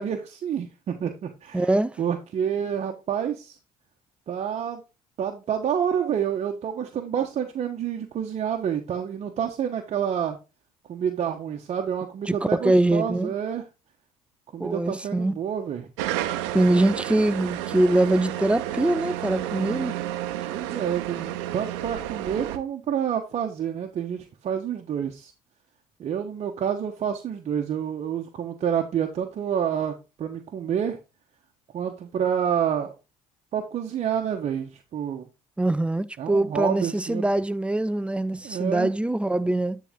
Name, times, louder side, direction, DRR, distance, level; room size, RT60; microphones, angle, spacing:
voice 1, 0.0-1.7 2.0-3.6 4.3-4.8 5.2-10.4 10.9-13.6 14.5-15.9 20.5-25.3 26.0-31.0 31.7-32.9 33.5-35.2 36.2-37.3 38.4-38.9, right 8 dB, 50° right, 1.1 m, -28 dB
voice 2, 1.5-2.0 12.3-13.3 14.6-15.3 16.5-20.0 35.6-39.8, right 1 dB, 10° right, 0.5 m, -23 dB
sound 1, 16.0-22.6, right 13 dB, 85° right, 0.8 m, -31 dB
10.0 x 4.1 x 3.7 m
supercardioid pair, 70°, 14 cm